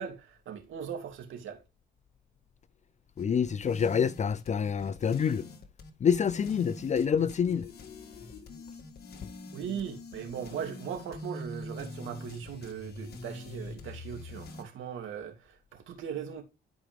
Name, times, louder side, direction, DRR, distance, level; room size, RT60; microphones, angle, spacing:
voice 1, 0.0-1.6 9.5-16.4, right 8 dB, 80° right, 2.5 m, -39 dB
sound 1, 3.2-14.6, left 2 dB, 55° left, 1.7 m, -44 dB
voice 2, 3.2-5.5 6.0-7.7, left 7 dB, 35° left, 0.4 m, -27 dB
11.5 x 5.0 x 3.5 m
cardioid pair, 90°, 20 cm